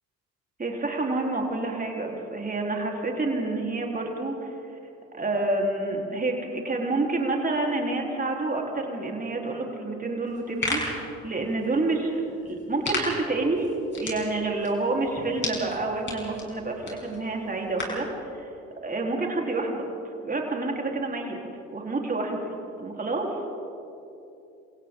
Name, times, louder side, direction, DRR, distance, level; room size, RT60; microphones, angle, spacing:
voice 1, 0.6-4.6 5.1-6.4 6.6-13.7 13.9-18.1 18.4-18.5 18.8-19.8 20.2-21.4 21.7-22.5 22.8-23.3, right 2 dB, 20° right, 0 dB, 4.0 m, -28 dB
sound 1, 10.3-18.1, left 2 dB, 25° left, 7.2 m, -36 dB
29.0 x 27.0 x 3.9 m, 2.7 s
figure-of-eight pair, 50°, 40 cm